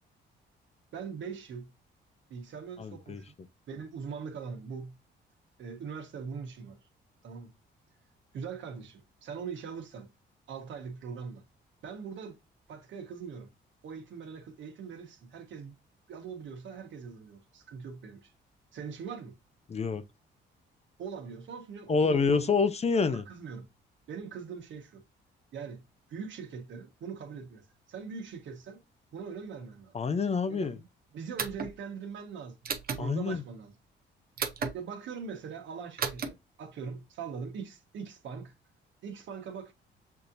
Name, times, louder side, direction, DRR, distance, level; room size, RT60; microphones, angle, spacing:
voice 1, 0.9-1.7 2.3-3.2 3.7-4.9 5.6-6.8 7.2-7.5 8.3-10.1 10.5-11.4 11.8-12.4 12.7-13.5 13.8-15.8 16.1-18.3 18.7-19.3 21.0-22.5 23.0-23.7 24.1-25.0 25.5-25.8 26.1-27.6 27.9-28.8 29.1-30.0 30.5-30.9 31.1-33.7 34.7-38.5 39.0-39.7, right 6 dB, 70° right, 1.2 m, -41 dB
voice 2, 2.8-3.2 19.7-20.0 21.9-23.2 29.9-30.8 33.0-33.4, left 4 dB, 35° left, 0.6 m, -27 dB
sound 1, 31.4-31.7 32.6-33.0 34.4-34.7 36.0-36.3, right 6 dB, 50° right, 0.8 m, -32 dB
6.5 x 2.8 x 2.5 m
cardioid pair, 90°, 20 cm